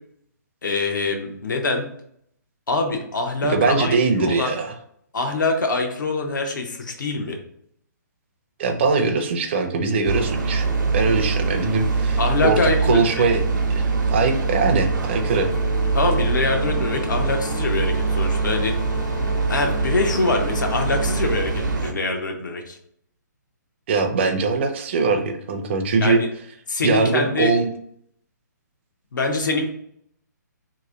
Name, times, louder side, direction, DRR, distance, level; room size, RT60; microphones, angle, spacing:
voice 1, 0.6-1.9 2.7-4.5 5.1-7.4 12.2-13.0 15.9-18.8 19.5-22.8 26.0-26.3 26.7-27.5 29.1-29.7, left 3 dB, 85° left, 3 dB, 0.9 m, -24 dB
voice 2, 3.4-4.7 8.6-10.7 10.9-15.5 23.9-26.2 26.8-27.7, right 4 dB, 40° right, 6 dB, 0.5 m, -22 dB
sound 1, 10.0-21.9, right 4 dB, 85° right, 0.8 m, -23 dB
Brass instrument, 15.1-21.5, left 9 dB, 35° left, 0.3 m, -36 dB
3.0 x 2.5 x 3.7 m, 0.69 s
hypercardioid pair, 160°, 10 cm